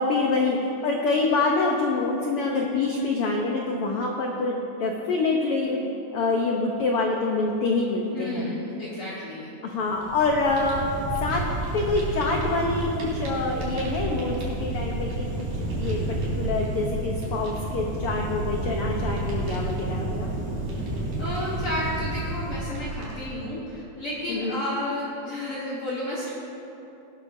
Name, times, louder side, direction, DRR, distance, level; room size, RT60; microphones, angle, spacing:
voice 1, 0.0-8.5 9.0-9.2 9.6-11.4 11.7-20.3 24.3-24.6, left 3 dB, 75° left, 0 dB, 1.3 m, -26 dB
voice 2, 8.1-9.5 21.2-26.3, left 1 dB, 50° left, -8 dB, 2.1 m, -32 dB
Fire, 9.9-23.4, right 2 dB, 75° right, 3.9 m, -30 dB
18.5 x 12.0 x 2.7 m, 2.9 s
omnidirectional pair, 3.7 m